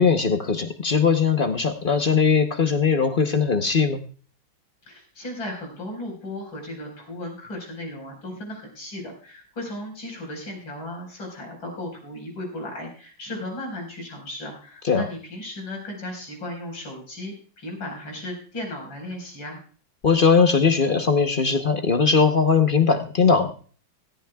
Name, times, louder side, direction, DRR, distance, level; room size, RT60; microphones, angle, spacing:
voice 1, 0.0-4.0 14.8-15.0 20.0-23.5, left 5 dB, 45° left, 7 dB, 0.7 m, -20 dB
voice 2, 4.9-19.6, left 1 dB, 75° left, 1 dB, 5.5 m, -35 dB
17.0 x 14.0 x 2.3 m, 0.41 s
omnidirectional pair, 2.1 m